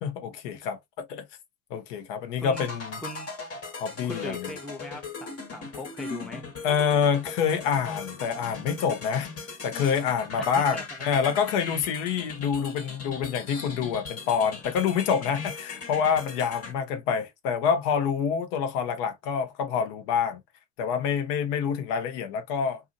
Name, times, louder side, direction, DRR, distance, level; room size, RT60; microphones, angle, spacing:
voice 1, 0.0-1.2 1.7-3.0 3.8-4.4 6.6-9.3 9.6-20.4 20.8-22.8, left 7 dB, 75° left, 1.0 m, -27 dB
voice 2, 2.4-2.7 3.0-3.3 4.0-6.5 10.4-10.8 11.3-11.4, left 1 dB, ahead, 0.6 m, -40 dB
sound 1, 2.5-16.7, left 4 dB, 30° left, 1.4 m, -39 dB
2.7 x 2.6 x 2.5 m
supercardioid pair, 90°, 47 cm